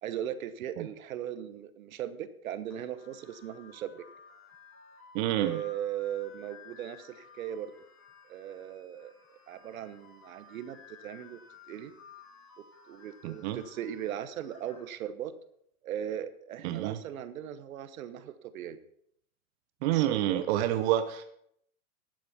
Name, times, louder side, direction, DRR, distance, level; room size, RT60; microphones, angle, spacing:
voice 1, 0.0-4.0 5.4-7.7 8.3-11.4 11.7-11.9 12.9-15.3 15.8-18.8 19.9-20.4, right 10 dB, 70° right, 12 dB, 1.1 m, -38 dB
sound 1, 2.7-14.8, left 5 dB, 45° left, 5.4 m, -55 dB
voice 2, 5.1-5.6 13.2-13.6 16.6-17.0 19.8-21.2, right 12 dB, 45° right, 9 dB, 0.9 m, -28 dB
12.0 x 7.6 x 5.7 m, 0.70 s
hypercardioid pair, 120°, 43 cm